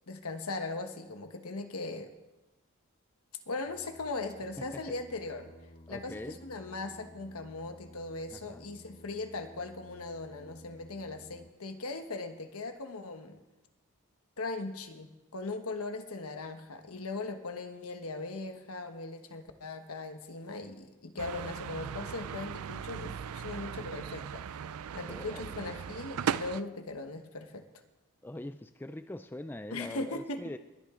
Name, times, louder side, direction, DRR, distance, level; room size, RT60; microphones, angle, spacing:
voice 1, 0.1-2.1 3.5-5.5 5.9-13.4 14.4-24.6 24.9-27.7 29.7-30.6, left 3 dB, 85° left, 7 dB, 1.3 m, -39 dB
Singing, 3.6-11.5, equal, 45° left, 1.1 m, -55 dB
voice 2, 4.6-5.0 5.9-6.4 8.3-8.6 25.1-25.8 28.2-30.6, left 1 dB, 10° left, 10 dB, 0.3 m, -43 dB
sound 1, 21.2-26.6, right 8 dB, 85° right, 0.4 m, -38 dB
21.5 x 8.8 x 3.7 m, 1.0 s
head